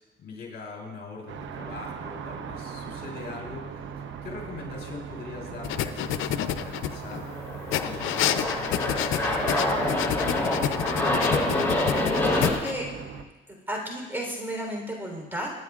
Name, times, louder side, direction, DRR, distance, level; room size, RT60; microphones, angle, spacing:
voice 1, 0.2-3.7 4.2-7.2 7.8-10.8, left 4 dB, 55° left, -1 dB, 3.7 m, -42 dB
sound 1, 1.3-13.2, right 6 dB, 70° right, 0.9 m, -39 dB
sound 2, 5.6-7.2 7.7-12.7, left 11 dB, 85° left, 0.6 m, -29 dB
Aircraft, 6.8-12.5, left 1 dB, 10° left, 3.6 m, -27 dB
voice 2, 12.2-12.9 13.5-15.5, equal, 10° right, 0 dB, 3.6 m, -33 dB
26.0 x 9.5 x 2.4 m, 1.1 s
cardioid pair, 90°, 20 cm